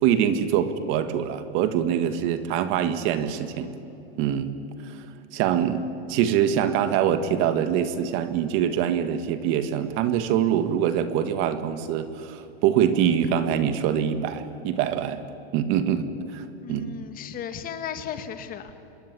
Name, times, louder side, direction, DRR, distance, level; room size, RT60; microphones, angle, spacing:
voice 1, 0.0-3.7 4.2-4.5 4.8-5.0 5.3-15.2 15.5-16.9, right 9 dB, 40° right, 10 dB, 1.9 m, -24 dB
voice 2, 16.6-18.7, left 8 dB, 30° left, 9 dB, 1.9 m, -35 dB
26.5 x 21.5 x 9.8 m, 2.7 s
supercardioid pair, 145°, 31 cm